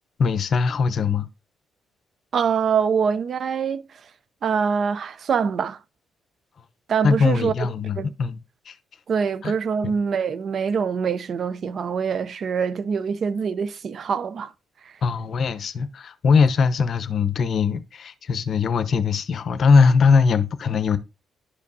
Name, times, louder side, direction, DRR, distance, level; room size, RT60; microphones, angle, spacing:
voice 1, 0.2-1.3 7.0-8.4 8.7-8.8 9.4-9.5 9.8-10.0 15.0-21.0, left 5 dB, 55° left, 0.7 m, -20 dB
voice 2, 2.3-3.8 4.4-5.8 6.9-7.5 8.0-8.1 9.1-14.5 14.8-14.9, right 6 dB, 55° right, 0.6 m, -24 dB
11.5 x 5.1 x 2.7 m
cardioid pair, 90°, 0 cm